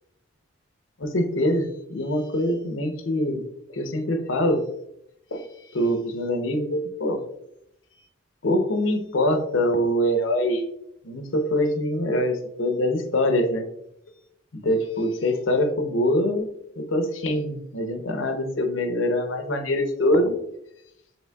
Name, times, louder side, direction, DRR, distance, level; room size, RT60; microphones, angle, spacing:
voice 1, 1.0-3.4 3.7-4.7 5.3-5.5 5.7-7.2 8.4-10.6 11.0-13.7 14.5-16.5 16.8-20.4, left 1 dB, 70° left, 6 dB, 0.7 m, -24 dB
7.1 x 3.2 x 2.2 m, 0.78 s
head